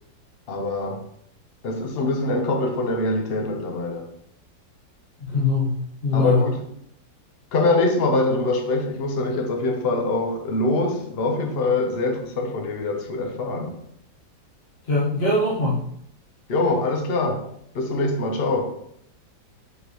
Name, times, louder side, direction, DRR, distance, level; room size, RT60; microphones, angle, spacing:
voice 1, 0.5-1.0 1.6-4.1 6.1-6.6 7.5-13.8 16.5-17.4 17.7-18.7, left 2 dB, 55° left, 0.6 m, -24 dB
voice 2, 5.2-5.8 6.0-6.4 14.9-15.8, left 2 dB, 35° left, 1.3 m, -21 dB
6.3 x 5.0 x 3.0 m
omnidirectional pair, 2.1 m